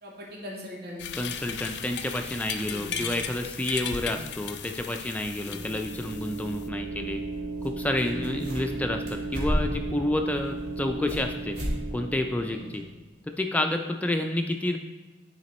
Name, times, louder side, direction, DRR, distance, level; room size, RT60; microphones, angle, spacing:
voice 1, 0.0-1.1 2.5-3.1 3.8-4.2 5.4-5.6 7.9-8.4 12.4-12.7 13.5-13.7, equal, 60° right, -3 dB, 2.1 m, -42 dB
sound 1, 1.0-6.7, left 8 dB, 70° left, 0.5 m, -37 dB
voice 2, 1.2-7.2 7.6-11.6 11.9-12.8 13.2-14.8, left 1 dB, 10° left, 4 dB, 0.3 m, -29 dB
sound 2, 5.2-12.9, right 2 dB, 85° right, 1.2 m, -36 dB
sound 3, 7.6-7.7 7.9-8.8 9.1-9.9 10.4-11.3 11.5-11.8 12.1-12.2 12.7-12.8, equal, 40° right, 2.4 m, -31 dB
9.5 x 4.1 x 4.1 m, 1.3 s
head